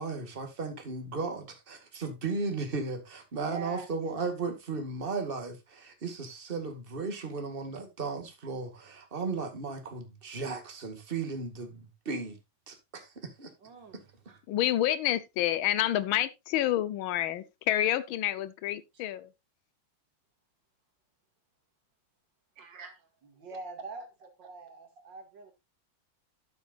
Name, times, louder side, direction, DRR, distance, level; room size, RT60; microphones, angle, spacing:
voice 1, 0.0-12.4 12.7-13.5 14.3-14.4, right 4 dB, 30° right, 2.0 m, -35 dB
voice 2, 3.4-3.9 13.6-14.1 18.9-19.0 22.6-22.9 23.2-25.5, right 4 dB, 60° right, 2.8 m, -44 dB
voice 3, 14.5-19.3, left 13 dB, 85° left, 1.6 m, -28 dB
12.0 x 9.5 x 2.5 m
omnidirectional pair, 2.2 m